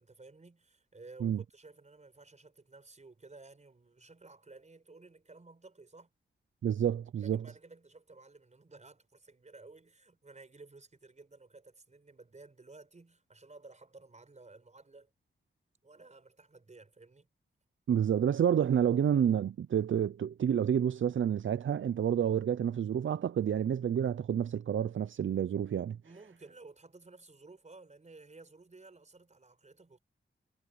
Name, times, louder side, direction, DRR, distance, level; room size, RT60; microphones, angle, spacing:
voice 1, 0.0-6.1 7.2-15.1 15.8-17.3 26.0-30.0, right 3 dB, 35° right, 4.5 m, -55 dB
voice 2, 6.6-7.4 17.9-26.0, right 9 dB, 75° right, 0.5 m, -29 dB
wide cardioid pair, 130°, 20 cm